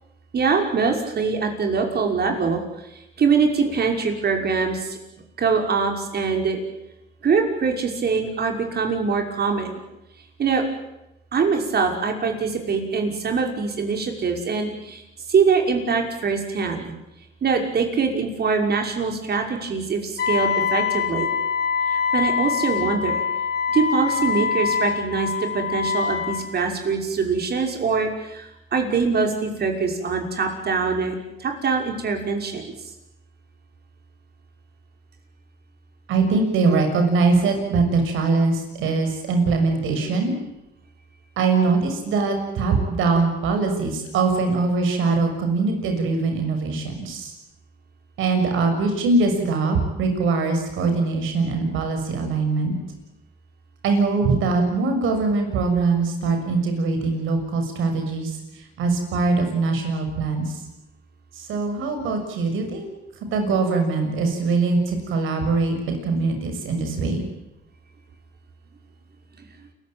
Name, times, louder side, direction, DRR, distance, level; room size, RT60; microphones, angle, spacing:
voice 1, 0.3-2.6 2.9-5.0 5.4-6.6 7.2-9.8 10.4-10.6 11.3-15.0 15.3-16.9 17.4-21.3 21.9-23.2 23.7-32.7, right 5 dB, 55° right, 3 dB, 5.9 m, -23 dB
Wind instrument woodwind instrument, 20.2-26.4, left 6 dB, 55° left, 4.6 m, -24 dB
voice 2, 36.1-40.3 41.4-47.3 48.2-52.7 53.8-60.6 61.3-62.9 63.3-67.2, right 3 dB, 85° right, 5 dB, 6.6 m, -22 dB
29.5 x 16.0 x 9.2 m, 0.91 s
cardioid pair, 90°, 20 cm